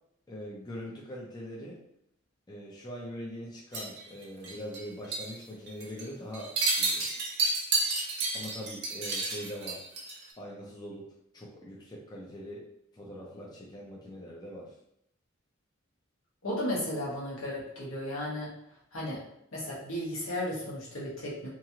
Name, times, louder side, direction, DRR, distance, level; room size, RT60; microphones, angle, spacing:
voice 1, 0.3-1.8 2.5-6.5 6.8-7.1 8.3-9.8 10.4-11.1 11.3-12.6 12.9-14.7, equal, 20° left, -4 dB, 0.4 m, -42 dB
sound 1, 3.7-4.8 5.1-5.3 5.7-6.0 6.3-10.2, right 3 dB, 55° right, 0.7 m, -31 dB
voice 2, 16.4-18.5 18.9-19.2 19.5-21.5, left 1 dB, 80° left, -5 dB, 1.1 m, -34 dB
3.0 x 2.4 x 2.7 m, 0.76 s
head